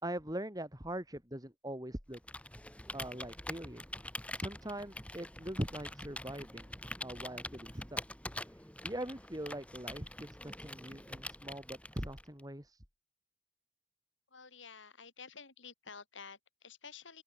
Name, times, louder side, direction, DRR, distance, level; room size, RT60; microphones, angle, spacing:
voice 1, 0.0-2.2 2.9-3.8 4.4-8.0 8.5-12.8, right 1 dB, 20° right, 5.2 m, -42 dB
Computer keyboard, 2.1-12.4, left 1 dB, 5° left, 5.1 m, -45 dB
voice 2, 14.3-17.2, left 5 dB, 65° left, 3.7 m, -51 dB
open air
head